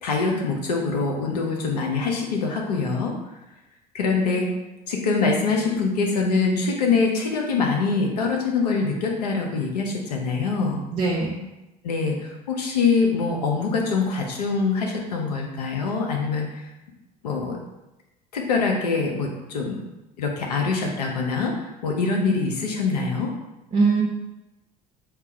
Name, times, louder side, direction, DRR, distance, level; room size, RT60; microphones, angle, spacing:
voice 1, 0.0-3.1 3.9-4.5 4.9-10.8 11.8-16.6 17.2-17.6 18.3-19.8 20.2-23.3, left 4 dB, 80° left, 0 dB, 0.7 m, -24 dB
voice 2, 10.9-11.4 23.7-24.0, right 4 dB, 35° right, -4 dB, 0.8 m, -21 dB
3.5 x 2.4 x 4.3 m, 0.99 s
figure-of-eight pair, 65°, 20 cm